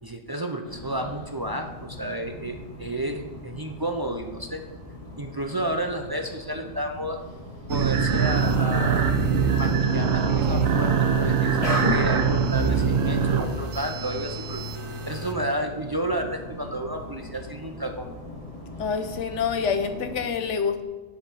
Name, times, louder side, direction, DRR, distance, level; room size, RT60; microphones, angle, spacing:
voice 1, 0.0-4.6 5.2-7.2 7.7-9.0 9.5-14.6 15.1-18.1, right 1 dB, 30° right, 4 dB, 0.4 m, -31 dB
sound 1, 0.6-20.3, left 1 dB, 30° left, 1.4 m, -38 dB
sound 2, 7.7-15.3, right 5 dB, 90° right, 1.3 m, -23 dB
voice 2, 18.8-20.8, left 6 dB, 70° left, 8 dB, 1.1 m, -27 dB
8.3 x 8.1 x 5.5 m, 1.2 s
omnidirectional pair, 1.3 m